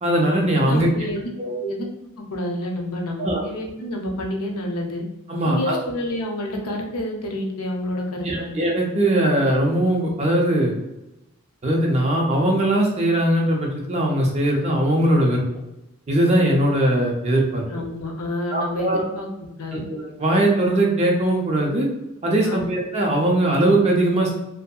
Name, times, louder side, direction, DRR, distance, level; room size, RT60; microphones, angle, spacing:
voice 1, 0.0-0.9 1.4-1.5 3.2-3.4 5.3-5.8 8.2-10.7 11.6-15.4 16.1-17.6 18.5-19.0 19.7-21.9 22.2-24.4, right 1 dB, 30° right, -1 dB, 0.5 m, -20 dB
voice 2, 0.6-1.3 1.6-1.9 2.2-5.0 5.4-8.5 17.7-19.3 19.6-19.8 22.4-22.7, left 1 dB, 85° left, 1 dB, 0.6 m, -29 dB
2.6 x 2.6 x 2.3 m, 0.92 s
head